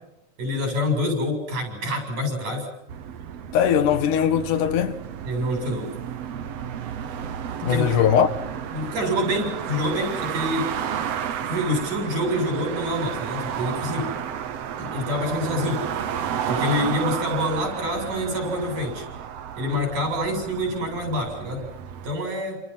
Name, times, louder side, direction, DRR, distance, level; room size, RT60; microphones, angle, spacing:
voice 1, 0.4-2.7 5.2-5.9 7.6-8.1 8.7-11.0 11.4-14.1 14.8-15.8 16.5-19.1 19.6-21.7 22.0-22.6, left 1 dB, 85° right, 8.8 m, -26 dB
sound 1, 2.9-22.1, right 8 dB, 60° right, 2.2 m, -32 dB
voice 2, 3.5-5.0 7.6-8.3, left 9 dB, 85° left, 3.0 m, -20 dB
29.0 x 28.5 x 5.7 m
omnidirectional pair, 3.5 m